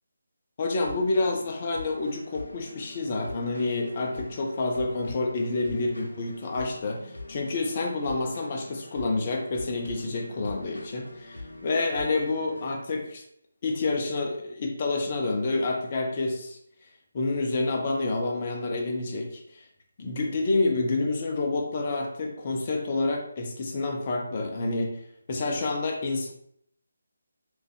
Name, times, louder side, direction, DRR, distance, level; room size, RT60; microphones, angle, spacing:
voice 1, 0.6-7.0 7.3-13.2 13.6-16.6 17.1-19.6 20.0-25.0 25.3-26.3, left 3 dB, 35° left, 1 dB, 0.7 m, -28 dB
sound 1, 0.8-12.7, left 2 dB, 80° left, 0.9 m, -44 dB
3.4 x 2.6 x 3.8 m, 0.71 s
figure-of-eight pair, 150°, 0 cm